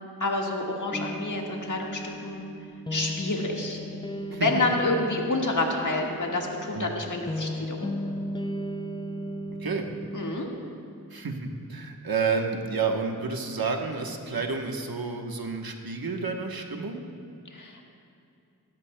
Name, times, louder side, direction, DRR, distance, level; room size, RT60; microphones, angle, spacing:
voice 1, 0.0-2.5 2.9-3.8 4.3-7.9 10.1-10.5 17.5-17.8, left 2 dB, 50° left, 0 dB, 1.7 m, -28 dB
sound 1, 0.9-10.5, equal, 15° left, 0.4 m, -36 dB
voice 2, 11.1-17.0, right 4 dB, 70° right, 3 dB, 1.1 m, -30 dB
17.5 x 13.0 x 2.2 m, 2.5 s
wide cardioid pair, 45°, 38 cm